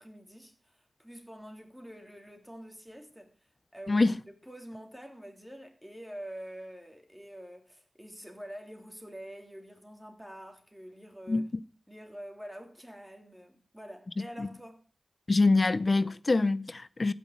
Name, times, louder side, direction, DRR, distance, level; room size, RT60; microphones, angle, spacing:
voice 1, 0.0-3.3 3.7-11.5 11.9-14.9, equal, 5° right, 3.3 m, -46 dB
voice 2, 15.3-17.1, left 3 dB, 45° left, 0.5 m, -25 dB
15.5 x 6.2 x 8.3 m
cardioid pair, 60°, 0 cm